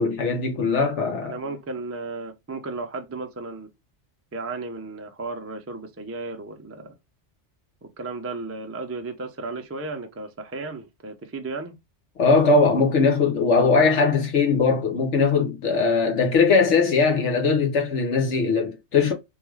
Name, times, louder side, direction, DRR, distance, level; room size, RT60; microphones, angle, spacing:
voice 1, 0.0-1.3 12.2-19.1, left 4 dB, 80° left, 1.1 m, -20 dB
voice 2, 1.2-3.7 4.3-7.0 7.8-11.7, right 3 dB, 25° right, 0.3 m, -34 dB
3.4 x 2.4 x 3.0 m
omnidirectional pair, 1.2 m